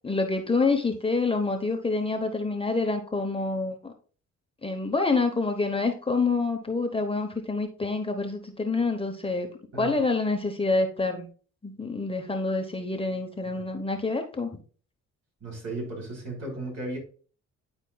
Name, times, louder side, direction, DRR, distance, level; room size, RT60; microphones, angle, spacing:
voice 1, 0.0-3.9 4.6-9.5 9.8-11.3 11.6-14.5, left 3 dB, 20° left, 4 dB, 0.8 m, -27 dB
voice 2, 15.4-17.0, right 2 dB, 55° right, -1 dB, 3.3 m, -35 dB
10.0 x 4.5 x 2.2 m, 0.40 s
cardioid pair, 90°, 30 cm